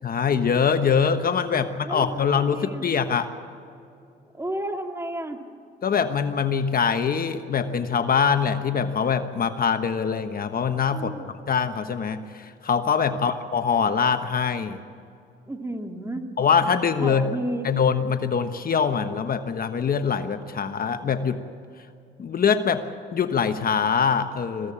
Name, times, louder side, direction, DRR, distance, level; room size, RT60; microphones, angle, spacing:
voice 1, 0.0-3.3 5.8-14.8 16.4-17.2 17.6-21.4 22.2-22.8 23.1-24.7, left 6 dB, 45° left, 8 dB, 1.2 m, -23 dB
voice 2, 1.5-2.9 4.3-5.4 10.9-11.3 13.1-13.3 15.5-16.2 17.0-17.7, right 1 dB, 15° right, 4 dB, 2.3 m, -32 dB
22.0 x 16.0 x 8.7 m, 2.5 s
cardioid pair, 90°, 20 cm